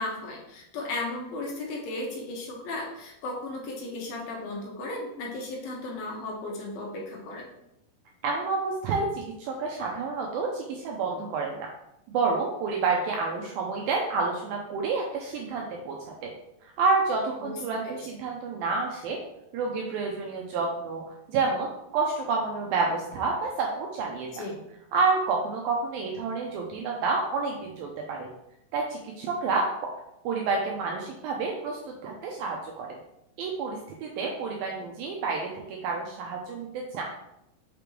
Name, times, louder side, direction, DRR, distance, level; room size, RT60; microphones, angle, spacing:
voice 1, 0.0-7.5 17.4-17.6 17.8-18.0 24.3-24.6, left 2 dB, 70° left, -1 dB, 2.6 m, -35 dB
voice 2, 8.2-11.7 12.1-16.3 16.8-19.2 19.5-21.0 21.3-21.7 21.9-24.3 24.9-28.3 28.7-29.7 30.2-33.0 33.4-37.0, right 4 dB, 85° right, 0 dB, 2.1 m, -29 dB
5.9 x 5.1 x 3.1 m, 0.82 s
omnidirectional pair, 4.8 m